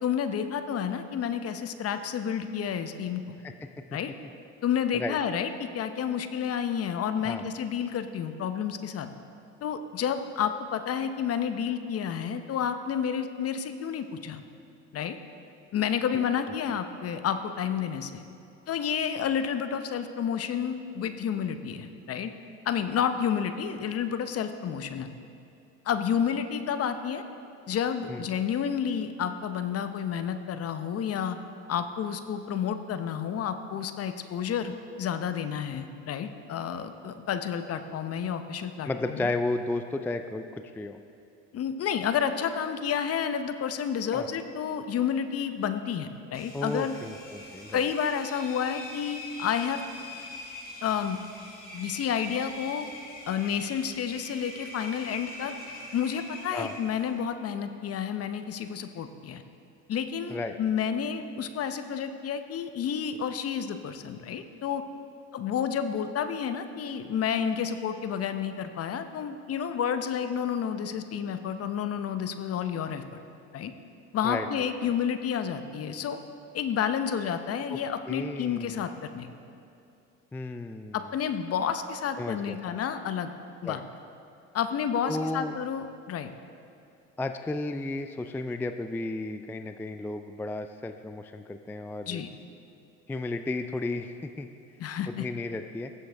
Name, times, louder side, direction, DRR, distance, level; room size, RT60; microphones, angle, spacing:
voice 1, 0.0-3.4 3.9-4.1 4.6-9.1 9.6-14.4 14.9-15.2 15.7-18.2 18.7-22.3 22.6-25.1 25.8-27.2 27.7-31.4 31.7-34.7 35.0-39.3 41.5-46.9 47.7-49.8 50.8-51.2 51.7-52.9 53.3-55.5 55.9-59.4 59.9-64.8 65.3-73.0 73.5-73.7 74.1-76.2 76.5-79.3 80.9-83.3 83.6-83.8 84.5-86.3 92.1-92.3 94.8-95.3, left 8 dB, 40° left, 9 dB, 0.8 m, -30 dB
voice 2, 38.8-41.0 44.1-44.3 46.5-47.8 56.5-56.7 60.3-60.6 74.2-74.9 77.7-77.8 78.1-78.8 80.3-81.0 82.2-82.8 83.6-83.8 85.1-85.5 87.2-92.2 93.1-94.5 95.1-95.9, left 2 dB, 5° left, 8 dB, 0.3 m, -33 dB
Engine, 46.3-57.2, left 2 dB, 25° left, 2.7 m, -43 dB
19.5 x 7.7 x 3.5 m, 2.6 s
hypercardioid pair, 75°, 36 cm